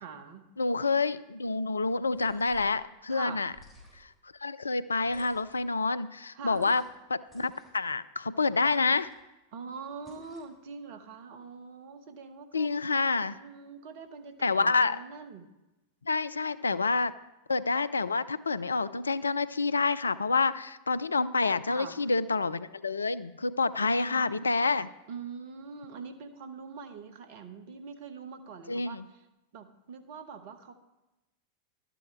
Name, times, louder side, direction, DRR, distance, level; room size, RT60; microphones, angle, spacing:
voice 1, 0.0-0.5 3.1-3.4 6.3-6.6 9.5-12.7 13.3-15.5 16.6-16.8 21.7-22.0 23.8-24.5 25.1-29.3 29.5-30.7, right 5 dB, 50° right, 8 dB, 1.0 m, -44 dB
voice 2, 0.6-3.5 4.4-6.8 7.1-9.1 12.5-13.4 14.4-15.0 16.1-17.1 17.5-24.9 28.7-29.0, left 4 dB, 75° left, 16 dB, 0.4 m, -28 dB
sound 1, 2.1-2.8 3.5-4.2 5.0-5.7 6.5-7.0 7.3-7.8 8.6-9.2 10.0-10.6, equal, ahead, 4.3 m, -54 dB
12.0 x 9.0 x 4.4 m, 0.99 s
figure-of-eight pair, 90°, 0 cm